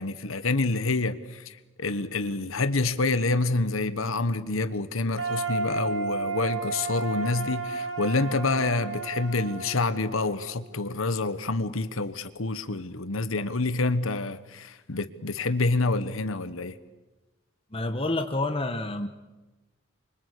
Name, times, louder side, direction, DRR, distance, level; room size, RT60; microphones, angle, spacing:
voice 1, 0.0-16.7, left 3 dB, 80° left, 1.2 m, -27 dB
sound 1, 5.2-11.1, right 3 dB, 65° right, 5.2 m, -33 dB
voice 2, 17.7-19.1, left 2 dB, 25° left, 1.3 m, -28 dB
29.0 x 25.0 x 8.4 m
head